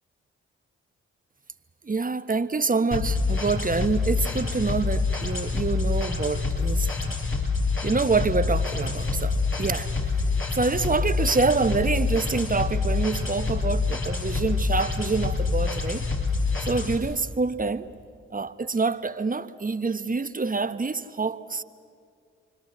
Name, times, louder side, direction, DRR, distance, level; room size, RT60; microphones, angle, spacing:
voice 1, 1.8-7.2 7.8-9.9 10.5-16.0 16.6-17.9 18.3-21.6, right 4 dB, 30° right, 1.2 m, -26 dB
sound 1, 2.9-17.0, left 4 dB, 45° left, 6.3 m, -26 dB
28.5 x 24.5 x 7.6 m
hypercardioid pair, 40°, 29 cm